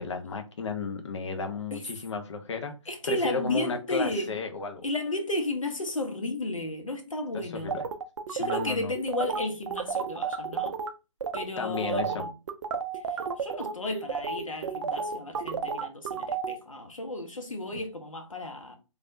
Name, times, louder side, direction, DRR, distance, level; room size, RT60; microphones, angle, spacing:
voice 1, 0.0-2.7 3.1-4.8 7.3-7.8 8.4-8.9 11.6-12.3, left 4 dB, 60° left, 0.8 m, -33 dB
voice 2, 2.9-4.4 4.8-7.8 8.3-10.8 11.3-12.3 12.9-18.8, left 1 dB, 90° left, 0.9 m, -33 dB
sound 1, 7.7-10.9 11.2-11.4 11.7-16.5, right 6 dB, 65° right, 0.4 m, -31 dB
3.3 x 2.4 x 2.5 m
figure-of-eight pair, 140°, 17 cm